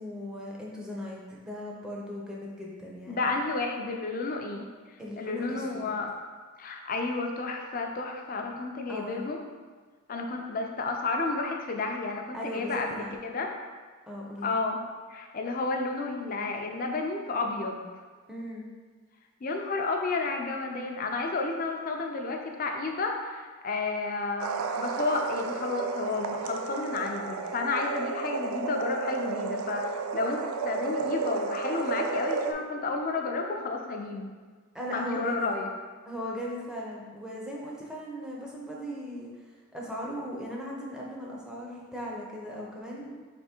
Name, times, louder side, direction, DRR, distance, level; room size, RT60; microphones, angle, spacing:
voice 1, 0.0-3.3 5.0-5.9 8.9-9.3 12.3-13.1 14.1-14.5 18.3-18.6 34.7-35.5 36.1-43.1, equal, 5° right, -4 dB, 0.6 m, -38 dB
voice 2, 3.1-4.7 5.2-6.1 6.6-9.4 10.1-13.5 14.4-14.8 15.1-17.9 19.4-34.3 34.9-35.7, left 3 dB, 40° left, 2 dB, 0.4 m, -31 dB
sound 1, 24.4-32.5, right 4 dB, 85° right, 0.3 m, -32 dB
3.4 x 3.1 x 4.3 m, 1.5 s
head